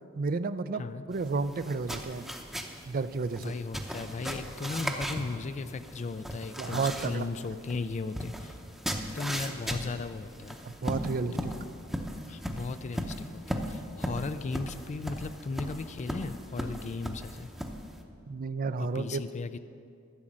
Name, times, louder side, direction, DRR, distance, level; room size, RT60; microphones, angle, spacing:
voice 1, 0.1-2.3 2.9-3.6 6.6-7.3 10.7-11.5 18.3-19.2, right 4 dB, 45° right, 14 dB, 0.4 m, -32 dB
sound 1, 1.1-18.0, equal, ahead, 0.8 m, -38 dB
voice 2, 3.4-8.6 8.9-10.6 11.3-11.6 12.3-17.5 18.8-19.6, left 3 dB, 35° left, 12 dB, 0.4 m, -36 dB
12.5 x 6.2 x 8.6 m, 2.4 s
head